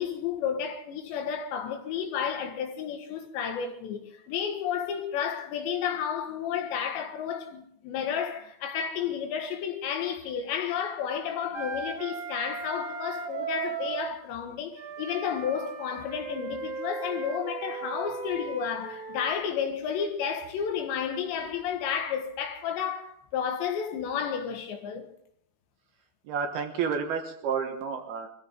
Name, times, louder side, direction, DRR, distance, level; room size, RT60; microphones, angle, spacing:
voice 1, 0.0-25.1, left 8 dB, 70° left, 3.6 m, -32 dB
Wind instrument woodwind instrument, 11.5-14.1 14.7-19.3, right 6 dB, 50° right, 1.5 m, -37 dB
voice 2, 26.2-28.3, right 6 dB, 70° right, 2.8 m, -30 dB
23.0 x 14.5 x 3.8 m
omnidirectional pair, 5.4 m